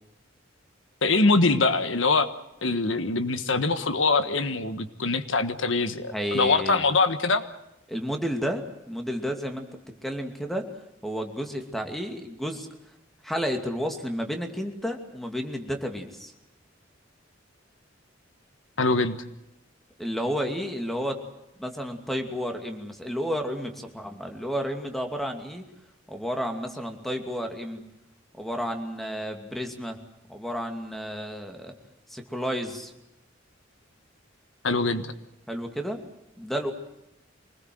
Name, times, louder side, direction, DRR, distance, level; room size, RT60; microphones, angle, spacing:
voice 1, 1.0-2.3 2.6-7.4 18.8-19.2 34.6-35.1, left 3 dB, 80° left, 11 dB, 1.5 m, -23 dB
voice 2, 6.1-6.8 7.9-9.7 10.0-10.7 11.0-12.7 13.2-16.3 20.0-21.2 21.6-25.6 26.1-27.8 28.3-30.0 30.3-31.7 32.1-32.9 35.5-36.0 36.4-36.7, equal, ahead, 4 dB, 2.6 m, -31 dB
25.5 x 19.5 x 7.8 m, 0.87 s
head